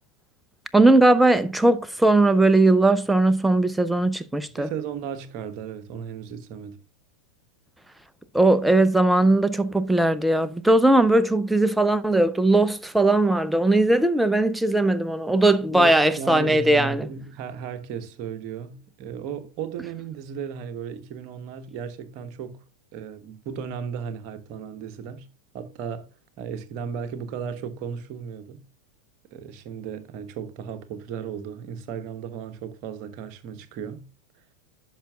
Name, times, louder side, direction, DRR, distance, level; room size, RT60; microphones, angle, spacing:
voice 1, 0.7-4.7 8.3-17.1, right 2 dB, 5° right, 0.6 m, -19 dB
voice 2, 4.6-6.8 15.7-22.6 22.9-25.3 25.5-26.1 26.4-28.7 29.3-34.1, right 7 dB, 40° right, 1.1 m, -35 dB
10.0 x 5.8 x 2.3 m
figure-of-eight pair, 90°, 0 cm